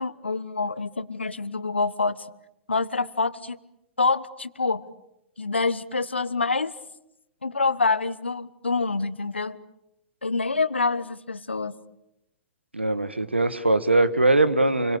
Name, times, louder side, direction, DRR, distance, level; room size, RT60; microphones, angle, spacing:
voice 1, 0.0-2.2 2.7-3.6 4.0-4.9 5.4-6.7 7.4-9.6 10.2-11.7, left 4 dB, 85° left, 16 dB, 1.3 m, -26 dB
voice 2, 12.7-15.0, right 2 dB, 90° right, 14 dB, 1.6 m, -21 dB
28.5 x 23.5 x 8.4 m, 0.86 s
figure-of-eight pair, 110°, 6 cm